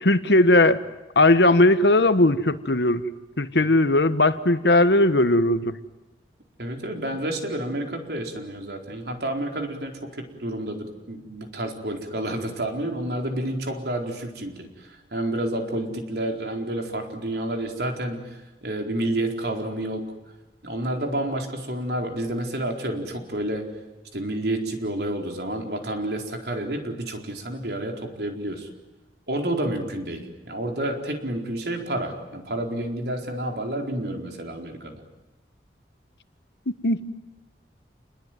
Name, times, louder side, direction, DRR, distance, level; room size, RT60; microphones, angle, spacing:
voice 1, 0.0-0.8 1.1-3.0 3.4-5.7 36.8-37.0, left 2 dB, 70° left, 11 dB, 1.5 m, -18 dB
voice 2, 6.6-20.0 20.6-23.7 24.1-28.7 29.3-35.0, right 1 dB, 65° right, 3 dB, 4.4 m, -30 dB
29.5 x 21.0 x 9.4 m, 1.1 s
head